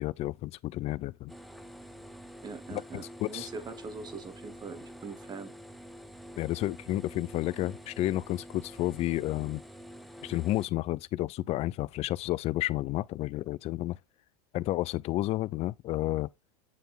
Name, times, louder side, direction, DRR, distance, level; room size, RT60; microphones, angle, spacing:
voice 1, 0.0-1.3 2.7-3.5 6.4-9.6 10.2-14.0 14.5-16.3, left 16 dB, 30° left, 0.4 m, -31 dB
sound 1, 1.3-10.7, equal, ahead, 0.8 m, -47 dB
voice 2, 2.4-5.5, right 4 dB, 20° right, 1.1 m, -42 dB
9.4 x 3.4 x 4.0 m
hypercardioid pair, 100°, 20 cm